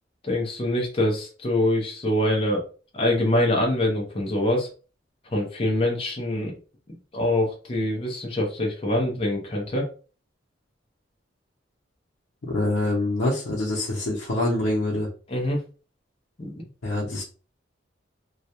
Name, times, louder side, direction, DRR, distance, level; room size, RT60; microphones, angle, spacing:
voice 1, 0.2-2.6 2.9-4.7 5.2-6.5 7.1-9.9 15.3-15.6 16.4-16.7, left 1 dB, 30° left, 0 dB, 0.6 m, -24 dB
voice 2, 12.4-15.1 16.8-17.2, left 2 dB, 90° left, -4 dB, 0.7 m, -25 dB
2.3 x 2.1 x 2.8 m, 0.37 s
head